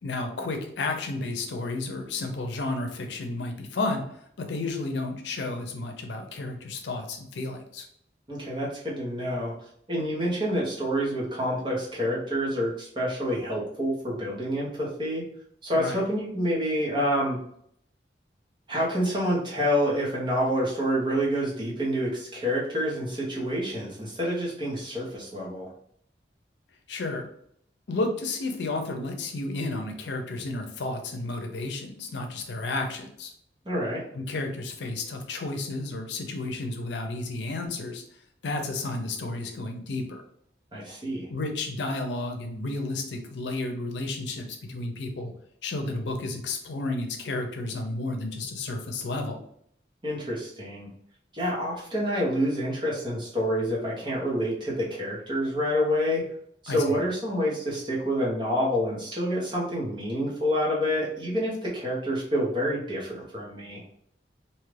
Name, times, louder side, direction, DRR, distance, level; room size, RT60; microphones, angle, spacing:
voice 1, 0.0-7.9 15.7-16.1 26.9-27.3 27.9-33.3 34.1-38.0 38.4-40.2 41.3-45.3 45.6-49.4 56.7-57.0, left 2 dB, 85° left, 4 dB, 0.6 m, -32 dB
voice 2, 8.3-9.5 9.9-15.2 15.6-17.4 18.7-25.7 33.6-34.0 40.7-41.3 50.0-50.9 51.3-56.2 56.6-63.8, equal, 25° right, -5 dB, 0.9 m, -28 dB
2.7 x 2.4 x 3.2 m, 0.67 s
head